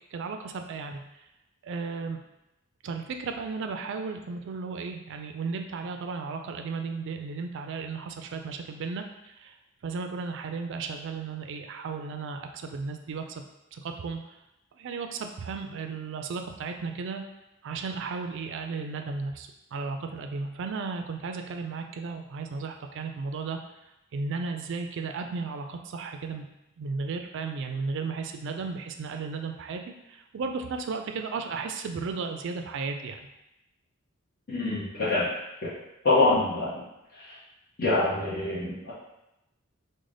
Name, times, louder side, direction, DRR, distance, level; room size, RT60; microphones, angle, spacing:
voice 1, 0.1-1.0 1.6-2.2 2.8-9.6 9.8-13.4 13.7-14.4 14.8-17.2 17.6-23.6 24.1-26.5 26.8-33.2, right 4 dB, 60° right, 5 dB, 0.3 m, -34 dB
voice 2, 34.5-35.3 35.6-35.7 36.0-36.8 37.1-37.4 37.8-38.9, left 2 dB, 50° left, -10 dB, 0.9 m, -25 dB
3.2 x 2.1 x 3.8 m, 0.91 s
head